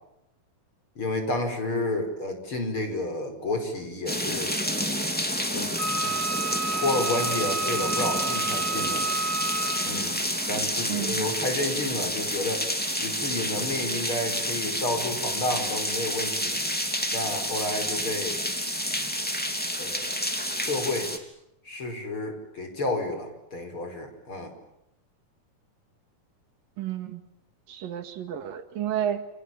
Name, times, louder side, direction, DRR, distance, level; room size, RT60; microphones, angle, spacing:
voice 1, 1.0-4.6 5.5-5.7 6.0-6.1 6.7-9.1 9.8-10.2 10.5-12.7 13.0-16.6 17.1-18.4 19.8-20.1 20.5-21.1 21.6-24.5, left 2 dB, 35° left, 6 dB, 6.0 m, -30 dB
sound 1, 4.1-21.2, equal, 5° left, 2.6 m, -29 dB
Wind instrument woodwind instrument, 5.8-10.0, right 4 dB, 20° right, 4.8 m, -31 dB
voice 2, 10.9-11.3 26.8-27.2 27.7-29.3, right 10 dB, 85° right, 9 dB, 3.7 m, -31 dB
29.5 x 27.5 x 7.4 m, 0.84 s
omnidirectional pair, 3.9 m